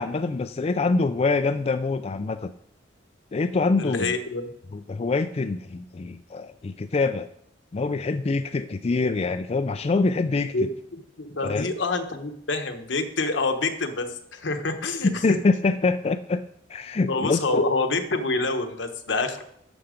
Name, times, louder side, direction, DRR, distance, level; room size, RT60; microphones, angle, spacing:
voice 1, 0.0-2.5 3.3-4.1 4.7-7.3 7.7-10.5 11.4-11.7 15.2-16.4 16.7-17.6, left 3 dB, 35° left, 8 dB, 0.4 m, -25 dB
voice 2, 3.8-4.5 10.5-15.4 17.1-19.4, left 3 dB, 75° left, 6 dB, 1.1 m, -27 dB
11.5 x 6.9 x 5.1 m, 0.73 s
head